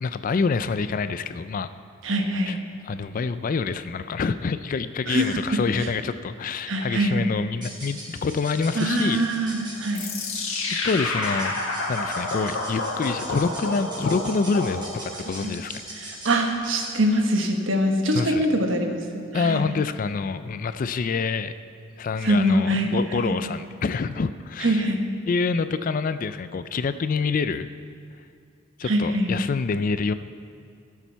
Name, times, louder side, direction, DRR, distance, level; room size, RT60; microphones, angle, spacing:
voice 1, 0.0-1.7 2.5-2.6 2.9-9.2 10.7-11.5 11.9-15.8 18.1-18.5 19.3-21.5 22.0-24.9 25.3-27.7 28.8-30.1, left 4 dB, 40° left, 12 dB, 0.3 m, -26 dB
voice 2, 2.0-2.6 5.1-5.9 6.7-7.2 8.7-10.0 15.4-15.5 15.9-19.7 22.2-22.9 23.2-23.4 24.6-25.0 28.8-29.3, right 1 dB, 65° right, 3 dB, 1.2 m, -24 dB
sound 1, 7.6-17.1, right 1 dB, 20° right, 2.9 m, -41 dB
sound 2, 10.0-15.3, left 2 dB, 85° left, 1.6 m, -29 dB
16.5 x 7.2 x 4.5 m, 2.5 s
head